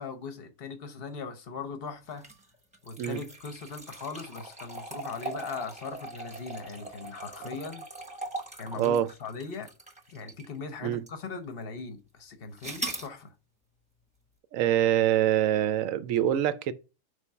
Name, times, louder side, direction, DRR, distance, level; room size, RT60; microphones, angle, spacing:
voice 1, 0.0-2.2 2.8-7.9 8.6-9.7 10.1-13.3, left 5 dB, 45° left, 0.9 m, -39 dB
sound 1, 2.1-10.6 11.1-11.2 12.6-13.1, right 2 dB, 5° right, 0.8 m, -40 dB
voice 2, 8.8-9.1 10.8-11.0 14.5-16.7, right 11 dB, 70° right, 0.9 m, -25 dB
5.1 x 3.4 x 5.5 m
omnidirectional pair, 1.7 m